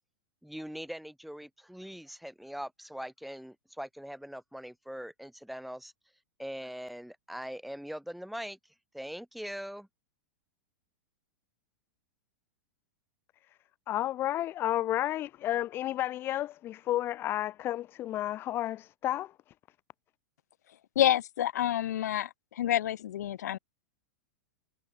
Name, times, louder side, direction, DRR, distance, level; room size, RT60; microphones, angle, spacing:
voice 1, 0.4-5.9 6.4-8.6 8.9-9.9, equal, ahead, 1.3 m, -41 dB
voice 2, 13.9-19.3, left 13 dB, 25° left, 0.6 m, -31 dB
voice 3, 21.0-22.3 22.6-23.6, left 12 dB, 80° left, 0.9 m, -28 dB
supercardioid pair, 145°, 9 cm